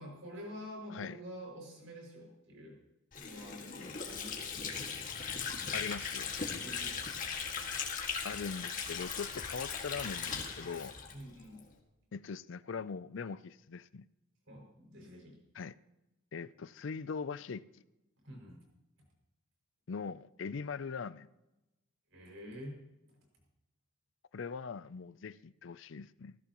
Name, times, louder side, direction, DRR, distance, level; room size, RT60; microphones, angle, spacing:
voice 1, 0.0-2.8 3.1-4.5 6.6-7.2 11.1-11.7 14.5-15.4 18.2-18.6 22.1-22.8, equal, 65° right, 6.0 m, -48 dB
Water / Sink (filling or washing), 3.1-11.7, left 6 dB, 40° left, 2.0 m, -38 dB
voice 2, 5.7-6.3 8.2-10.9 12.1-14.1 15.5-15.7 16.3-17.8 19.9-21.3 24.3-26.4, left 5 dB, 60° left, 0.4 m, -41 dB
20.5 x 15.5 x 3.0 m
head